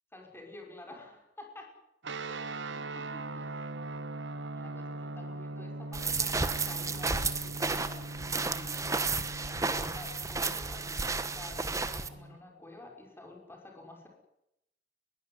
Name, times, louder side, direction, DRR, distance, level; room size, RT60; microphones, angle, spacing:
voice 1, 0.1-1.7 2.3-3.6 4.5-8.9 9.5-14.1, left 2 dB, 15° left, 1 dB, 5.7 m, -50 dB
sound 1, 2.0-12.4, right 2 dB, 85° right, 1.2 m, -41 dB
sound 2, 5.9-12.1, right 4 dB, 20° right, 1.2 m, -32 dB
21.5 x 16.5 x 9.7 m, 0.84 s
head